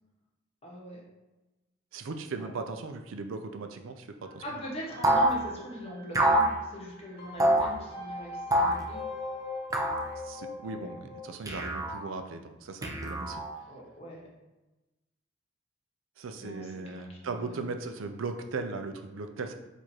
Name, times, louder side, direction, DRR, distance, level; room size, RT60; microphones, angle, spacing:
voice 1, 0.6-1.0 2.4-2.6 4.4-9.0 10.7-10.9 13.7-14.3 16.4-17.6, equal, 30° left, -4 dB, 1.2 m, -42 dB
voice 2, 1.9-4.4 10.2-13.4 16.2-19.5, right 3 dB, 85° right, 6 dB, 0.5 m, -38 dB
sound 1, 4.2-11.3, left 2 dB, 55° left, 1.0 m, -42 dB
sound 2, 5.0-5.4 6.1-6.5 7.4-7.7 8.5-8.8 9.7-10.1 11.5-12.0 12.8-13.5, right 1 dB, 20° right, 0.5 m, -25 dB
4.7 x 2.6 x 4.3 m, 1.1 s
head